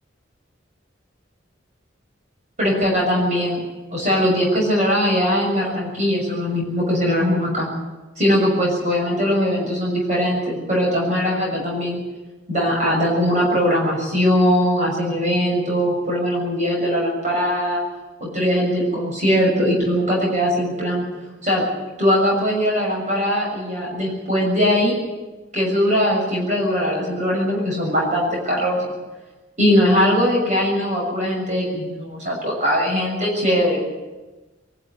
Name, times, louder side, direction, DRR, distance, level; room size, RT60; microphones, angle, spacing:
voice 1, 2.6-3.6 3.9-7.7 8.2-12.0 12.5-17.8 18.2-21.0 21.4-21.6 22.0-24.9 25.5-28.9 29.6-33.8, equal, 35° right, -2 dB, 6.5 m, -20 dB
22.5 x 12.0 x 9.9 m, 1.2 s
head